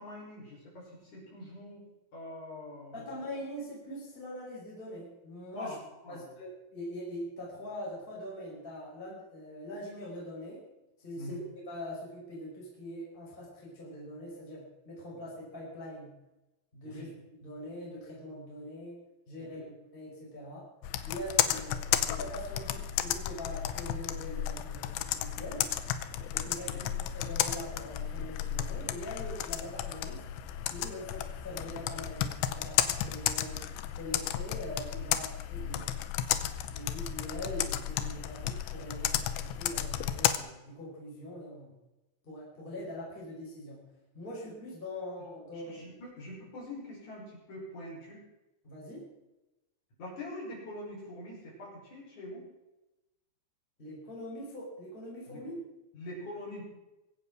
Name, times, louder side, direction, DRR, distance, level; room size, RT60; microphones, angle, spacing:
voice 1, 0.0-1.8 2.1-3.0 5.5-6.3 11.2-11.4 15.1-15.2 16.8-17.1 19.4-19.7 26.6-26.9 35.5-35.8 45.5-48.2 50.0-52.5 55.3-55.4 55.9-56.6, left 1 dB, 45° left, -4 dB, 6.8 m, -44 dB
voice 2, 2.9-5.8 6.1-10.6 11.0-16.2 16.7-17.0 17.4-19.0 19.3-20.6 21.0-25.7 26.3-30.3 30.7-33.6 33.9-36.1 36.7-41.7 42.2-43.8 44.1-45.9 48.6-49.1 53.8-55.5, equal, 10° left, -5 dB, 4.7 m, -43 dB
Computer keyboard, 20.8-40.4, left 11 dB, 85° left, 3.1 m, -33 dB
22.5 x 8.1 x 6.2 m, 0.99 s
omnidirectional pair, 4.9 m